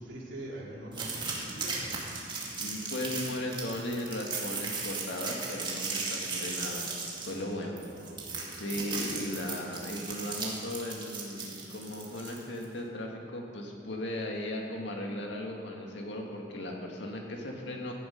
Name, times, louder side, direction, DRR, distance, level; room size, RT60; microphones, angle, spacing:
voice 1, 0.0-2.1 7.3-9.0, right 1 dB, 75° right, -5 dB, 3.8 m, -44 dB
sound 1, 0.9-12.7, right 4 dB, 25° right, 2.3 m, -37 dB
voice 2, 2.6-7.0 7.3-7.8 8.3-17.9, left 1 dB, 70° left, 0 dB, 2.1 m, -37 dB
16.5 x 11.5 x 5.4 m, 2.5 s
head